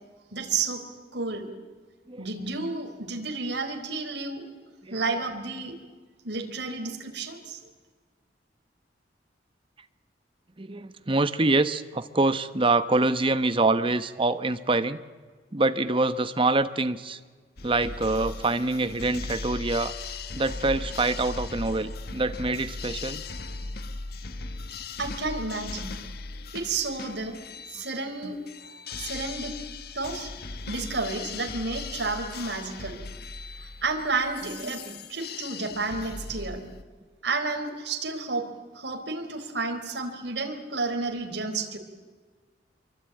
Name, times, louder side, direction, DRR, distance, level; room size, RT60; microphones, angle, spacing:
voice 1, 0.3-0.8 1.1-1.5 2.2-4.5 4.9-5.7 6.2-7.6 25.0-26.0 26.5-27.4 27.7-28.5 29.0-29.6 29.9-30.3 30.7-33.0 33.8-36.6 37.2-38.5 38.7-41.8, right 3 dB, 70° right, 3 dB, 4.0 m, -31 dB
voice 2, 10.6-15.0 15.5-17.2 17.6-19.9 20.3-23.2 34.9-35.0, right 2 dB, 30° right, 12 dB, 1.0 m, -25 dB
sound 1, 17.6-36.8, left 3 dB, 60° left, 1.4 m, -38 dB
26.0 x 24.0 x 9.0 m, 1.5 s
head